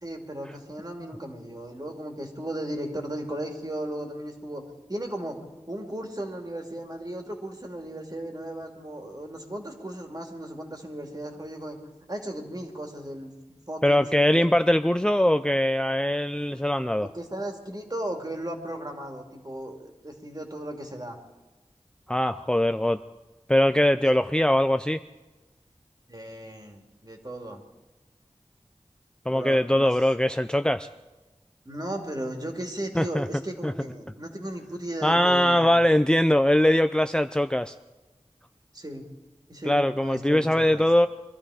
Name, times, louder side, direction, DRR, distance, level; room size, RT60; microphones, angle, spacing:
voice 1, 0.0-4.6 4.9-11.8 12.1-13.3 13.7-14.5 17.0-21.2 26.1-27.6 29.3-29.9 31.6-35.8 38.7-39.0 39.5-40.8, right 1 dB, 35° right, 2 dB, 2.6 m, -36 dB
voice 2, 13.8-17.1 22.1-23.0 23.5-25.0 29.3-30.9 32.9-33.3 33.6-33.7 35.0-37.7 39.7-41.1, left 1 dB, 5° left, 10 dB, 0.5 m, -22 dB
22.5 x 13.0 x 5.0 m, 1.1 s
wide cardioid pair, 40°, 11 cm